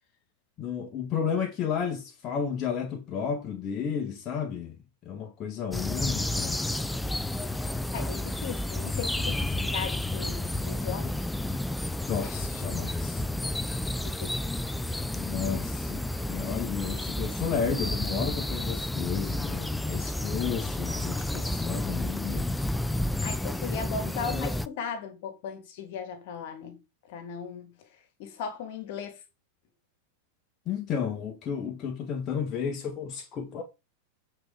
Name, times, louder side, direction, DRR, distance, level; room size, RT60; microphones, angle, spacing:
voice 1, 0.6-4.7 5.0-6.6 12.1-13.2 15.1-22.5 30.6-33.6, left 7 dB, 30° left, 1.6 m, -32 dB
sound 1, 5.7-24.7, left 1 dB, 5° left, 0.5 m, -31 dB
voice 2, 7.9-11.2 14.0-14.4 23.2-26.8 27.1-27.7 28.2-29.2, left 6 dB, 50° left, 2.1 m, -37 dB
8.6 x 4.6 x 5.0 m
figure-of-eight pair, 90°, 0 cm